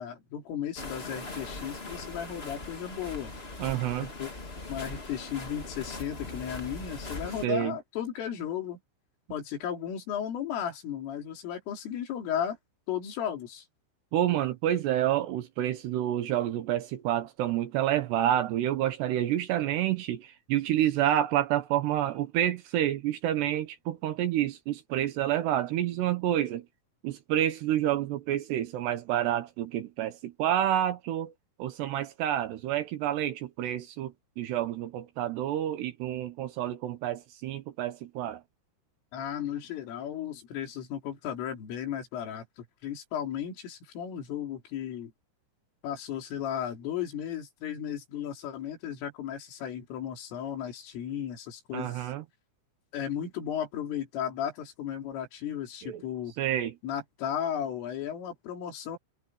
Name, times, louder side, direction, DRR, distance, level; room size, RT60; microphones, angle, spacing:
voice 1, 0.0-3.3 4.0-4.3 4.7-8.8 9.3-12.6 12.9-13.7 39.1-45.1 45.8-52.1 52.9-56.3 56.8-59.0, left 9 dB, 80° left, 6.0 m, -35 dB
sound 1, 0.7-7.4, left 2 dB, 55° left, 0.6 m, -40 dB
voice 2, 3.6-4.1 7.4-7.8 14.1-26.6 27.0-31.3 31.6-38.4 51.7-52.2 55.8-56.0 56.4-56.7, right 12 dB, 70° right, 2.8 m, -29 dB
omnidirectional pair, 5.7 m